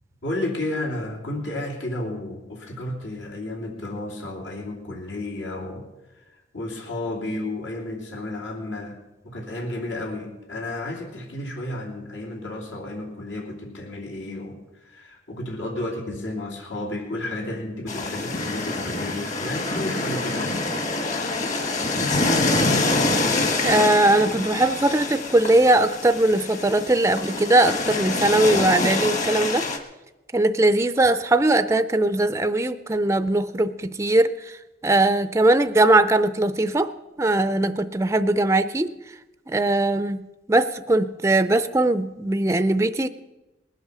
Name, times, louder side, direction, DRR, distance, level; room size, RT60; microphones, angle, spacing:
voice 1, 0.2-5.9 6.3-20.7, left 1 dB, 80° left, -1 dB, 3.0 m, -32 dB
sound 1, 17.9-29.8, left 2 dB, 40° left, 1.4 m, -25 dB
voice 2, 23.6-29.7 30.3-34.6 34.8-36.9 37.2-38.9 39.5-40.2 40.5-43.1, right 2 dB, 15° right, 11 dB, 0.4 m, -20 dB
20.0 x 8.0 x 6.7 m, 1.0 s
head